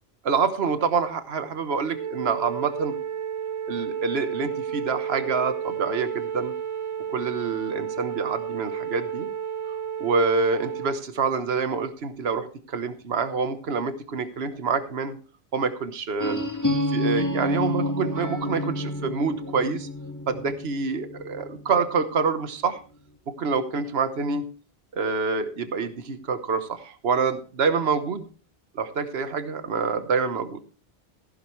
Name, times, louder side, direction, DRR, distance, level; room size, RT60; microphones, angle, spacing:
voice 1, 0.2-3.0 3.7-6.5 7.1-9.3 10.0-15.1 15.5-16.4 16.9-19.9 20.3-22.8 23.3-24.5 24.9-28.3 28.7-30.6, right 5 dB, 75° right, 10 dB, 1.4 m, -26 dB
Wind instrument woodwind instrument, 1.9-11.0, right 8 dB, 40° right, 0.5 m, -32 dB
sound 1, 16.2-22.0, left 1 dB, 15° left, 2.0 m, -29 dB
15.0 x 11.5 x 3.1 m, 0.36 s
omnidirectional pair, 1.1 m